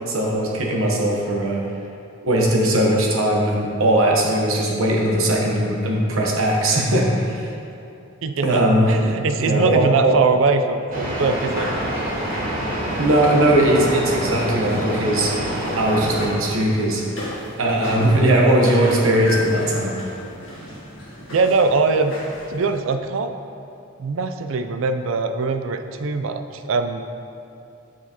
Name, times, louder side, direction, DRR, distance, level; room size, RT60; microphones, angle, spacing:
voice 1, 0.1-1.6 2.2-7.5 8.4-9.1 9.4-10.2 13.0-15.3 15.8-17.0 17.6-20.0, right 1 dB, 85° right, -1 dB, 1.0 m, -19 dB
voice 2, 8.2-11.7 16.2-16.3 21.3-22.1 22.5-23.3 24.0-27.0, right 4 dB, 65° right, 7 dB, 0.4 m, -22 dB
sound 1, 10.9-16.3, right 1 dB, 45° right, 1.2 m, -26 dB
sound 2, 11.2-22.8, left 1 dB, 65° left, 1.5 m, -35 dB
7.1 x 6.0 x 2.9 m, 2.7 s
head